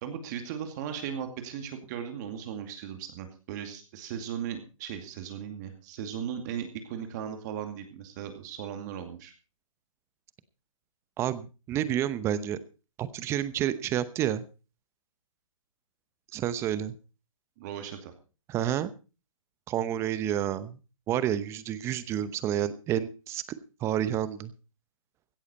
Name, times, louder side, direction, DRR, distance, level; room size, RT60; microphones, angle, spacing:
voice 1, 0.0-9.3 17.6-18.1, right 8 dB, 30° right, 7 dB, 2.3 m, -37 dB
voice 2, 11.2-12.6 13.0-14.4 16.3-16.9 18.5-18.9 19.7-20.8 21.1-23.4 23.8-24.5, right 11 dB, 15° right, 15 dB, 0.9 m, -29 dB
16.5 x 13.5 x 4.2 m, 0.34 s
hypercardioid pair, 150°, 17 cm